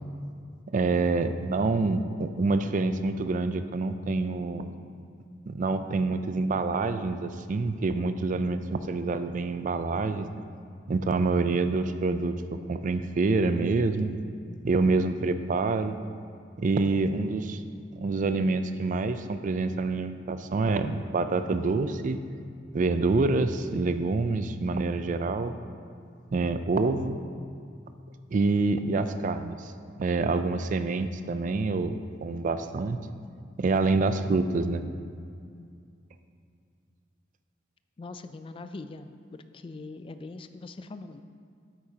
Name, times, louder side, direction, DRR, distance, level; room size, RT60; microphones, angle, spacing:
voice 1, 0.7-4.7 5.5-10.3 10.9-14.1 14.6-16.0 16.6-17.6 18.0-22.2 22.7-25.6 26.3-27.2 28.3-29.7 30.0-33.0 33.6-34.8, right 3 dB, 45° right, 10 dB, 0.4 m, -27 dB
voice 2, 38.0-41.2, left 3 dB, 30° left, 10 dB, 0.3 m, -42 dB
9.1 x 8.6 x 2.8 m, 2.3 s
head